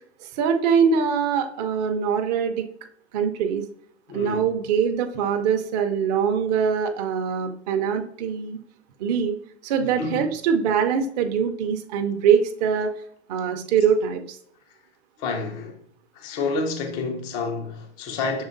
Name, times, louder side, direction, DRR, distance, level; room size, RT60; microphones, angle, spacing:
voice 1, 0.3-2.7 3.1-3.6 4.1-8.6 9.0-9.4 9.6-12.9 13.3-14.4, right 7 dB, 35° right, 0.5 m, -23 dB
voice 2, 4.1-4.4 10.0-10.3 15.2-15.8 16.1-18.4, left 3 dB, 15° left, 0.3 m, -29 dB
6.3 x 3.4 x 2.5 m
figure-of-eight pair, 105°, 35 cm